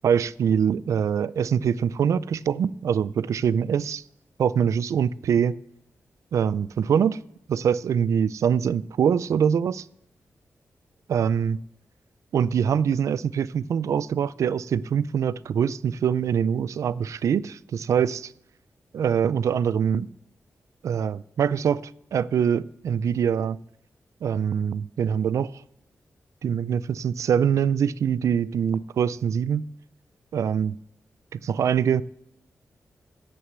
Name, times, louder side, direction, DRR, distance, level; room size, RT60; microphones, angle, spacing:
voice 1, 0.0-4.0 4.4-5.6 6.3-7.2 7.5-9.9 11.1-11.6 12.3-18.3 18.9-20.1 20.8-23.6 24.2-25.5 26.4-29.6 30.3-30.8 31.3-32.0, right 8 dB, 80° right, 0.4 m, -24 dB
15.5 x 6.4 x 7.9 m
wide cardioid pair, 175°, 5 cm